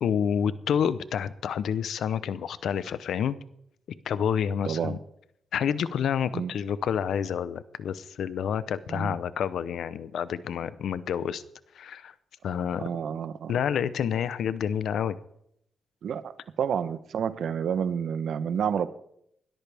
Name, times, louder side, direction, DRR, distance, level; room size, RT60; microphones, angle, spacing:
voice 1, 0.0-3.4 4.0-5.0 5.5-11.4 11.7-12.1 12.4-12.9 13.5-15.2, left 8 dB, 85° left, 16 dB, 0.7 m, -28 dB
voice 2, 4.6-5.0 6.3-6.5 8.9-9.2 12.8-13.6 16.0-16.3 16.6-18.9, right 8 dB, 80° right, 13 dB, 0.9 m, -29 dB
20.5 x 13.5 x 3.5 m, 0.73 s
cardioid pair, 80°, 0 cm